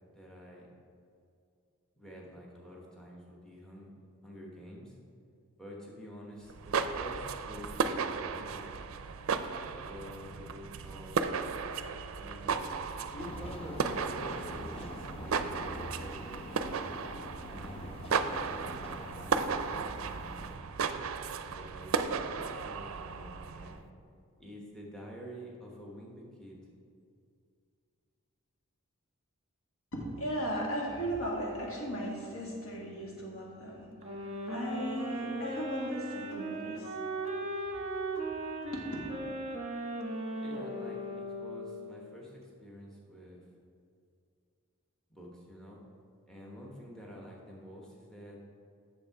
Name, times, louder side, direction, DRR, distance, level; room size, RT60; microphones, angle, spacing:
voice 1, 0.1-0.7 2.0-3.9 4.2-5.0 5.6-8.8 9.8-11.3 12.2-17.0 17.5-20.6 21.4-23.8 24.4-26.6 40.4-43.5 45.1-45.8 46.3-48.4, equal, 5° left, -2 dB, 1.1 m, -48 dB
sound 1, 6.5-23.8, right 5 dB, 70° right, 0.4 m, -35 dB
sound 2, 13.2-20.6, left 1 dB, 25° left, 0.6 m, -45 dB
voice 2, 29.9-37.0 38.7-38.9, equal, 75° left, -2 dB, 1.9 m, -37 dB
sound 3, 34.0-42.0, right 1 dB, 30° right, 1.0 m, -37 dB
8.7 x 6.6 x 4.7 m, 2.4 s
head